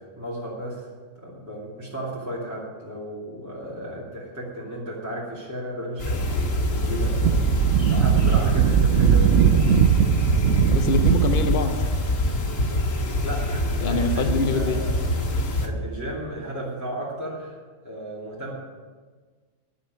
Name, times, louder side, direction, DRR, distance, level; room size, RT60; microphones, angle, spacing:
voice 1, 0.0-7.4 7.9-9.6 13.2-14.9 15.6-17.6 17.8-18.5, right 1 dB, 15° right, -7 dB, 2.5 m, -34 dB
sound 1, 6.0-15.7, left 1 dB, 85° left, 2.2 m, -25 dB
Wind, 6.8-11.7, right 9 dB, 80° right, 1.0 m, -20 dB
voice 2, 10.7-11.7 13.8-14.8, left 3 dB, 45° left, 6 dB, 1.0 m, -24 dB
11.0 x 6.9 x 9.3 m, 1.5 s
omnidirectional pair, 1.4 m